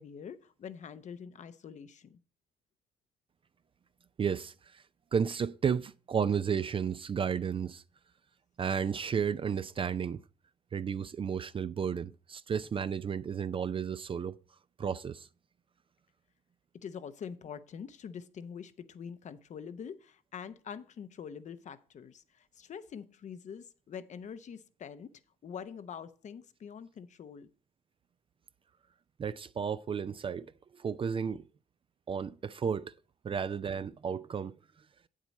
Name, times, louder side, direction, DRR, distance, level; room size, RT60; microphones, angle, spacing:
voice 1, 0.0-2.2 16.7-27.5, left 7 dB, 55° left, 0.8 m, -45 dB
voice 2, 4.2-4.8 5.1-7.8 8.6-10.2 10.7-14.4 14.8-15.3 29.2-31.5 32.1-32.9 33.2-34.5, right 7 dB, 35° right, 0.4 m, -33 dB
8.2 x 7.4 x 4.1 m
supercardioid pair, 65°, 15 cm